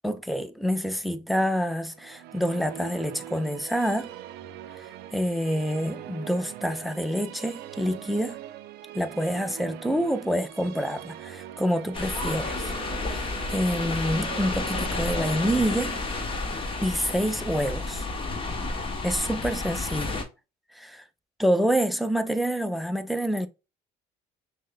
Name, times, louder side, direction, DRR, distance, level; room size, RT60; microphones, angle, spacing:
voice 1, 0.0-4.1 5.1-8.4 8.9-12.7 13.1-16.0 16.8-18.1 19.0-20.2 20.7-21.0 21.4-23.5, equal, ahead, 0.4 m, -27 dB
Musical instrument, 1.9-17.3, right 12 dB, 75° right, 0.4 m, -43 dB
sound 1, 11.9-20.2, left 3 dB, 30° left, 0.9 m, -31 dB
6.1 x 2.1 x 2.2 m
cardioid pair, 110°, 17 cm